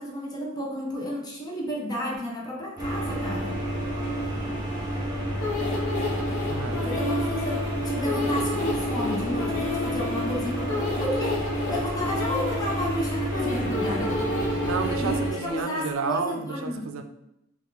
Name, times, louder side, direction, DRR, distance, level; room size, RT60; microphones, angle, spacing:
voice 1, 0.0-3.6 6.8-14.2 15.0-16.9, equal, 20° left, -2 dB, 0.7 m, -32 dB
sound 1, 2.8-15.3, right 1 dB, 20° right, 1.2 m, -30 dB
sound 2, 5.4-16.0, left 3 dB, 70° left, 0.8 m, -31 dB
voice 2, 6.5-6.9 14.6-17.0, right 5 dB, 80° right, 8 dB, 0.4 m, -31 dB
4.2 x 2.5 x 3.9 m, 0.83 s
head